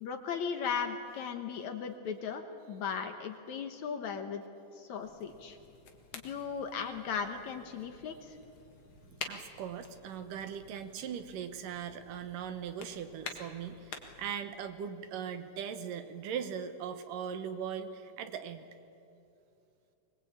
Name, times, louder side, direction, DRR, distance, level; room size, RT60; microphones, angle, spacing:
voice 1, 0.0-4.4 4.8-5.6 6.1-8.4, left 6 dB, 65° left, 6 dB, 2.2 m, -37 dB
sound 1, 5.0-14.3, left 5 dB, 45° left, 2.1 m, -49 dB
voice 2, 9.1-18.7, right 8 dB, 70° right, 9 dB, 2.6 m, -40 dB
24.0 x 21.0 x 8.7 m, 2.7 s
omnidirectional pair, 4.1 m